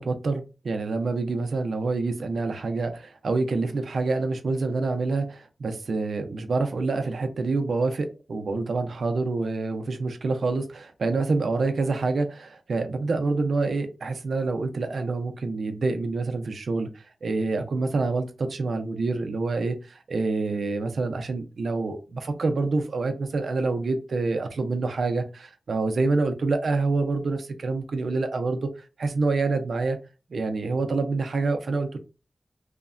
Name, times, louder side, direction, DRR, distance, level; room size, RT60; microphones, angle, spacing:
voice 1, 0.0-28.7 29.0-30.0 30.3-32.0, right 3 dB, 90° right, 6 dB, 0.5 m, -27 dB
3.1 x 2.1 x 2.4 m, 0.31 s
wide cardioid pair, 110°, 0 cm